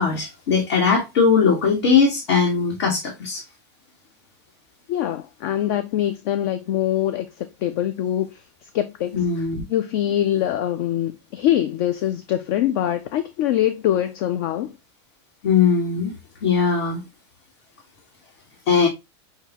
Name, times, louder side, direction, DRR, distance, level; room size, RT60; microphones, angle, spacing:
voice 1, 0.0-3.4 9.1-9.6 15.4-16.1 16.4-17.0 18.7-18.9, left 5 dB, 60° left, 1.5 m, -19 dB
voice 2, 4.9-8.4 8.7-9.1 9.7-14.7, left 12 dB, 45° left, 0.4 m, -23 dB
6.6 x 2.2 x 2.9 m
supercardioid pair, 160°, 14 cm